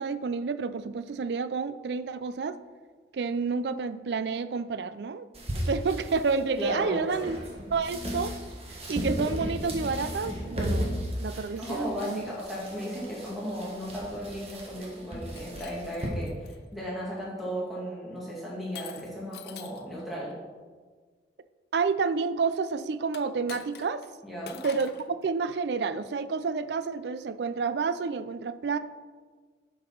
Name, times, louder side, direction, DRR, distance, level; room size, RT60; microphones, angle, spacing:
voice 1, 0.0-2.6 3.1-5.3 5.7-7.4 7.7-8.3 8.9-12.3 21.7-24.0 24.6-28.8, right 4 dB, 70° right, 13 dB, 0.4 m, -29 dB
sound 1, 5.3-16.1, equal, 35° right, 1.5 m, -35 dB
voice 2, 6.6-7.3 11.5-20.4 24.2-24.6, equal, ahead, -6 dB, 2.3 m, -35 dB
Shatter, 15.2-16.6 17.2-17.6 18.7-19.9 23.1-24.1 24.4-25.1, left 7 dB, 60° left, 0.6 m, -45 dB
7.7 x 5.4 x 5.8 m, 1.5 s
head